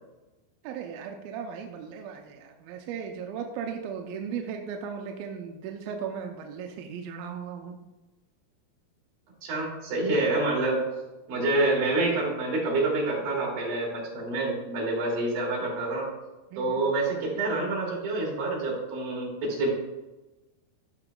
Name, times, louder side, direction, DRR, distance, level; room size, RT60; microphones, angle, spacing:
voice 1, 0.6-7.7 16.5-16.8, right 7 dB, 80° right, 3 dB, 2.2 m, -37 dB
voice 2, 9.4-10.8 11.3-16.1 16.6-19.7, right 2 dB, 65° right, -3 dB, 4.0 m, -27 dB
13.5 x 5.9 x 2.2 m, 1.1 s
omnidirectional pair, 4.6 m